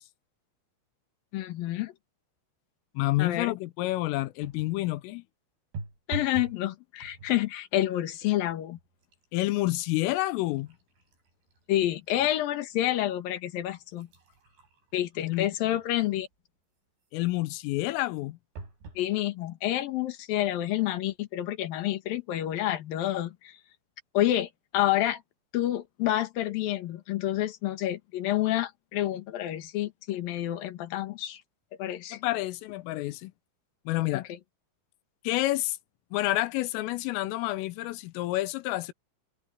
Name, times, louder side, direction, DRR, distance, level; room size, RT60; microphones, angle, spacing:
voice 1, 1.3-1.9 3.2-3.5 6.1-8.8 11.7-14.1 14.9-16.3 19.0-23.6 24.1-25.2 25.5-31.4 31.8-32.2 34.1-34.2, left 13 dB, 60° left, 2.7 m, -29 dB
voice 2, 3.0-5.2 9.3-10.7 15.2-15.5 17.1-18.4 32.1-33.3 33.9-34.3 35.3-35.8 36.1-38.9, left 18 dB, 85° left, 3.5 m, -29 dB
sound 1, 4.4-4.9 5.7-6.6 7.0-7.5 8.2-8.4 8.8-12.3 12.8-12.9 13.6-16.3 18.6-19.1 19.8-19.9 20.1-20.2, right 4 dB, 60° right, 9.9 m, -44 dB
omnidirectional pair, 5.7 m